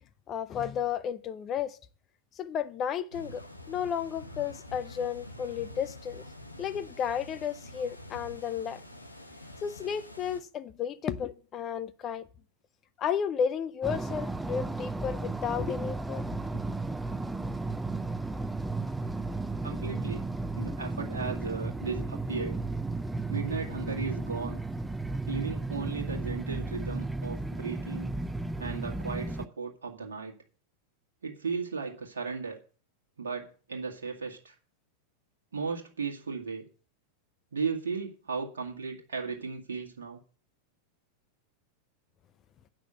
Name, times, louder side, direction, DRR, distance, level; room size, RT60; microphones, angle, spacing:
voice 1, 0.3-1.8 2.4-6.2 6.6-8.8 9.6-12.3 13.0-16.2, left 8 dB, 30° left, 0.7 m, -33 dB
sound 1, 3.1-10.4, left 1 dB, 85° left, 1.1 m, -47 dB
sound 2, 13.8-29.5, right 2 dB, 5° right, 0.4 m, -34 dB
voice 2, 19.6-20.2 20.5-22.6 23.3-24.6 25.3-28.1 28.6-30.4 31.2-32.6 33.2-34.6 35.5-36.7 37.5-40.2, right 5 dB, 65° right, 1.7 m, -36 dB
9.0 x 6.0 x 7.6 m
figure-of-eight pair, 90°, 0 cm